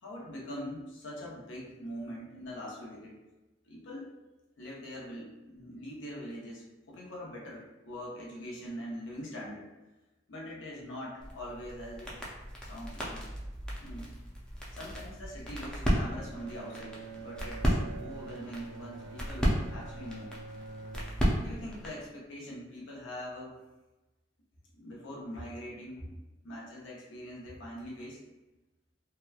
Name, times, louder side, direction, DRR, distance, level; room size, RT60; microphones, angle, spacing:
voice 1, 0.0-3.2 3.7-4.1 4.6-9.7 10.3-12.1 12.7-13.3 13.8-14.1 14.7-20.3 21.3-23.6 24.7-26.2 26.4-28.2, equal, 80° left, -4 dB, 0.7 m, -43 dB
sound 1, 11.2-22.1, equal, 5° left, 0.4 m, -34 dB
Bowed string instrument, 16.1-21.6, right 4 dB, 65° right, 0.3 m, -46 dB
2.8 x 2.1 x 2.3 m, 1.1 s
head